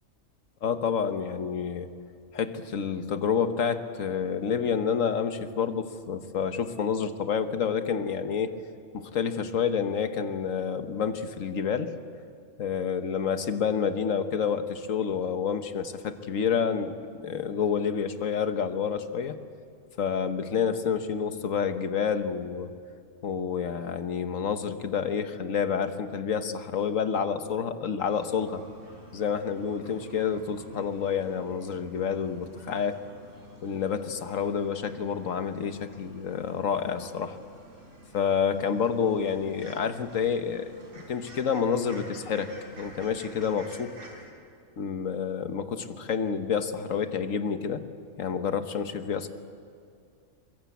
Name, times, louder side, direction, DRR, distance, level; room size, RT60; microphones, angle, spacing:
voice 1, 0.6-1.9 2.3-8.6 8.9-11.9 12.6-19.4 20.0-22.7 23.2-28.6 29.1-33.0 33.6-37.4 38.1-40.7 41.1-42.5 42.8-44.0 44.8-47.8 48.2-49.3, left 7 dB, 90° left, 9 dB, 1.6 m, -29 dB
sound 1, 28.0-44.2, right 1 dB, 70° right, 4.6 m, -50 dB
23.0 x 22.0 x 8.3 m, 2.3 s
omnidirectional pair, 1.3 m